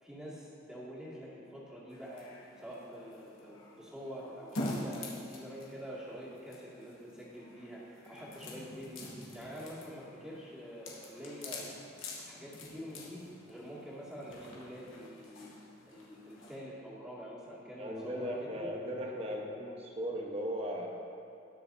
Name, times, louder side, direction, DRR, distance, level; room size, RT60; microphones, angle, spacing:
voice 1, 0.0-11.8 12.2-15.5 15.9-18.7, equal, 5° right, -9 dB, 2.3 m, -46 dB
sound 1, 1.9-16.6, left 1 dB, 90° left, 1.8 m, -46 dB
voice 2, 17.8-20.9, equal, 30° right, 0 dB, 1.0 m, -37 dB
19.5 x 6.7 x 2.7 m, 2.6 s
head